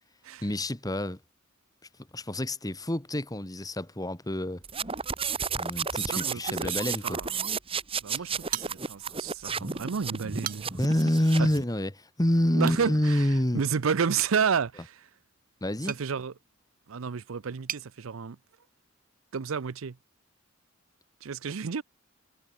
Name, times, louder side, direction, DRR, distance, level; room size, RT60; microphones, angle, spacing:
voice 1, 0.4-1.2 2.1-4.6 5.6-7.2 8.1-8.2 10.8-13.6 15.6-15.9, left 1 dB, 20° left, 1.7 m, -27 dB
sound 1, 4.6-11.6, right 5 dB, 30° right, 1.5 m, -32 dB
voice 2, 6.1-7.3 8.0-10.8 11.4-11.5 12.5-13.3 13.5-15.1 15.9-16.3 16.9-18.4 19.3-20.0 21.2-21.8, right 6 dB, 80° right, 0.6 m, -31 dB
sound 2, 8.5-9.3 9.6-9.7 10.2-11.0 12.6-12.9 14.1-17.9, right 11 dB, 45° right, 0.9 m, -40 dB
head